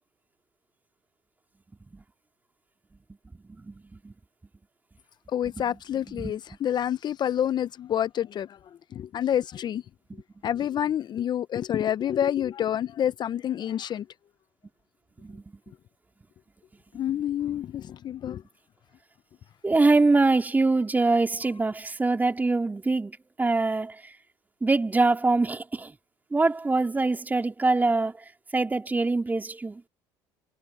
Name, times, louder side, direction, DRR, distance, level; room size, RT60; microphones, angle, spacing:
voice 1, 3.6-4.1 5.4-5.6 6.1-6.4 10.1-10.2 15.2-15.4 17.1-17.2 19.6-24.0 24.6-25.9 26.3-28.1 28.5-29.8, right 3 dB, 15° right, 3.3 m, -24 dB
voice 2, 5.3-8.5 8.9-9.8 10.4-14.0 16.9-18.4, left 10 dB, 45° left, 0.7 m, -28 dB
supercardioid pair, 80°, 10 cm